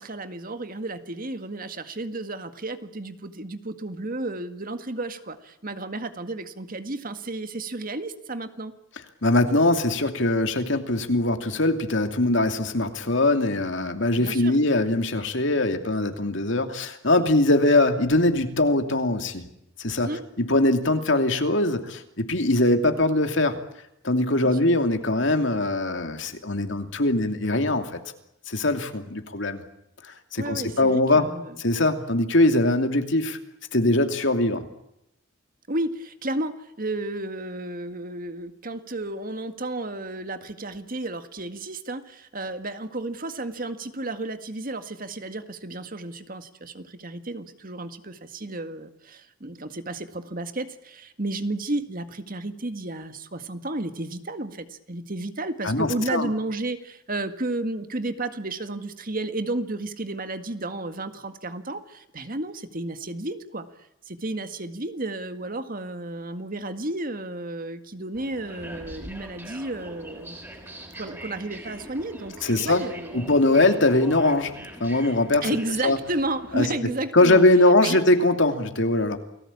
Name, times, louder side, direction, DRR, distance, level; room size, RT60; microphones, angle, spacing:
voice 1, 0.0-8.7 14.2-14.6 20.0-20.2 24.4-24.7 30.4-31.6 35.7-63.7 64.0-70.4 71.0-73.3 75.4-77.4 77.8-78.0, right 2 dB, 45° right, 9 dB, 1.9 m, -32 dB
voice 2, 9.2-19.4 19.8-20.1 20.4-23.6 24.0-28.0 28.5-29.6 30.0-31.3 31.6-33.4 33.7-34.6 55.6-56.3 72.4-72.8 73.1-74.5 74.8-75.5 75.8-76.0 76.5-76.7 77.1-79.2, left 2 dB, 65° left, 7 dB, 2.8 m, -22 dB
sound 1, 68.1-76.8, right 1 dB, 10° right, 5.3 m, -42 dB
29.0 x 19.5 x 8.7 m, 0.82 s
head